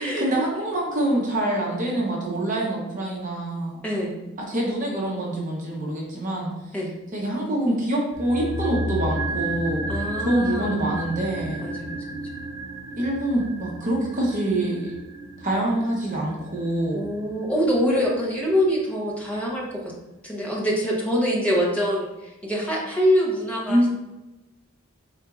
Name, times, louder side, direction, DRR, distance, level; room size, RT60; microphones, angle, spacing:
voice 1, 0.0-3.8 4.4-6.5 7.1-9.9 10.2-11.7 13.0-14.9 15.4-17.0 23.7-23.9, right 1 dB, 35° right, -2 dB, 0.8 m, -25 dB
voice 2, 3.8-4.2 6.7-6.9 9.9-10.8 11.6-12.2 16.9-19.9 20.2-23.9, equal, 5° left, -4 dB, 0.7 m, -24 dB
sound 1, 8.1-18.4 18.6-18.7, right 1 dB, 65° right, 0.6 m, -33 dB
4.3 x 3.9 x 2.3 m, 1.0 s
head